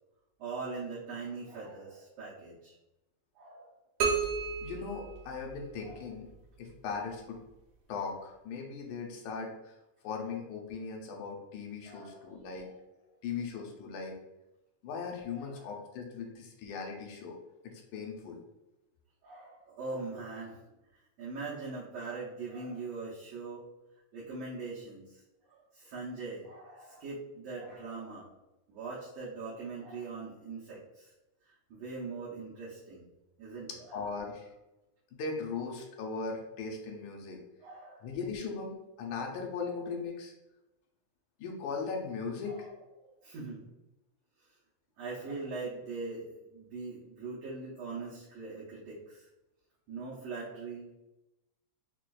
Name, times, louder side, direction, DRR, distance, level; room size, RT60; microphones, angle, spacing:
voice 1, 0.4-2.8 3.4-3.7 5.8-6.0 11.8-12.7 15.3-15.7 19.2-20.6 21.2-23.6 24.1-28.3 28.7-31.1 31.4-33.1 33.4-34.1 37.6-38.2 39.7-39.8 42.4-43.6 44.4-44.5 45.0-49.3 49.9-50.9, right 3 dB, 70° right, -8 dB, 1.8 m, -42 dB
sound 1, 4.0-5.9, right 5 dB, 85° right, 2.3 m, -32 dB
voice 2, 4.6-6.3 6.6-7.4 7.9-9.8 10.0-12.7 13.2-14.1 14.8-17.4 17.6-18.4 33.9-34.5 35.1-37.4 38.0-40.3 41.4-42.7, left 5 dB, 85° left, 0 dB, 2.0 m, -38 dB
5.8 x 2.4 x 2.3 m, 0.97 s
omnidirectional pair, 3.5 m